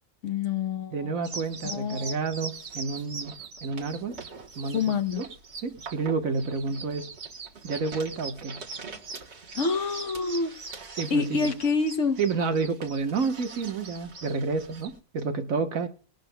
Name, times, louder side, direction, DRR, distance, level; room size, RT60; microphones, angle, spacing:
voice 1, 0.2-1.1 1.6-2.1 4.7-5.2 9.5-10.5 11.1-12.2, left 5 dB, 65° left, 1.3 m, -27 dB
voice 2, 0.9-3.3 3.6-4.2 4.6-5.3 5.6-7.1 7.6-8.6 11.0-11.5 12.2-15.9, right 4 dB, 80° right, 1.6 m, -30 dB
sound 1, 1.2-15.0, right 4 dB, 55° right, 1.6 m, -41 dB
20.5 x 11.5 x 2.2 m
omnidirectional pair, 1.4 m